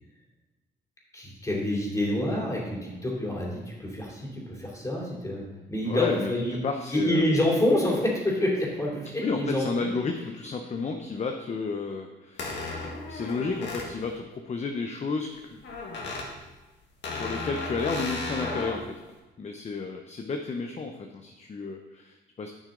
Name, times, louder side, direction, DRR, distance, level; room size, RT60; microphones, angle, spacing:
voice 1, 1.1-5.4 5.7-6.6 6.9-9.9 18.4-18.6, left 1 dB, 15° left, -3 dB, 3.0 m, -27 dB
voice 2, 5.9-7.2 9.2-15.6 17.0-18.9 19.4-22.5, left 4 dB, 35° left, 5 dB, 0.7 m, -32 dB
sound 1, 12.4-13.9 15.6-16.3 17.0-18.8, left 3 dB, 65° left, 2.0 m, -34 dB
10.5 x 6.2 x 3.8 m, 1.1 s
cardioid pair, 90°, 20 cm